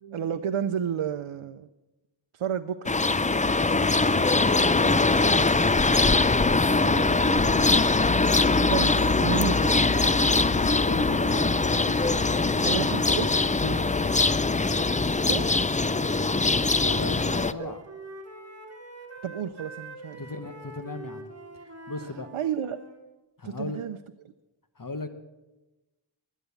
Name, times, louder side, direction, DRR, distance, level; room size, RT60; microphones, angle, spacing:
voice 1, 0.0-1.7 2.3-2.9 6.7-7.9 8.7-9.8 11.2-11.5 11.9-12.0 12.6-13.3 15.3-15.5 17.6-17.8 19.2-20.2 22.3-22.8 23.4-24.0, right 8 dB, 90° right, 9 dB, 0.6 m, -32 dB
sound 1, 2.9-17.5, left 3 dB, 15° left, 0.4 m, -22 dB
voice 2, 4.0-4.3 4.8-5.2 10.8-11.6 13.6-13.8 15.9-16.3 16.8-17.8 20.2-21.3 21.6-22.3 23.4-23.8 24.8-25.1, left 3 dB, 40° left, 8 dB, 1.2 m, -37 dB
Wind instrument woodwind instrument, 16.3-23.0, right 2 dB, 30° right, 3.2 m, -45 dB
21.5 x 9.3 x 7.0 m, 1.1 s
wide cardioid pair, 65°, 49 cm